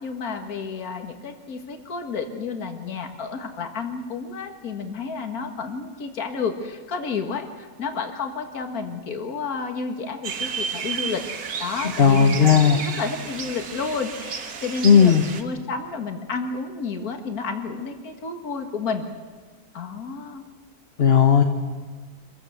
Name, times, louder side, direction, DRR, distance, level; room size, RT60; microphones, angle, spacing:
voice 1, 0.0-11.3 11.6-19.1 19.7-20.4, left 5 dB, 60° left, 6 dB, 2.2 m, -31 dB
sound 1, 10.2-15.4, right 6 dB, 60° right, 1.9 m, -32 dB
voice 2, 12.0-12.8 14.8-15.2 21.0-21.4, left 7 dB, 40° left, 4 dB, 1.2 m, -15 dB
25.5 x 15.5 x 8.1 m, 1.5 s
omnidirectional pair, 1.8 m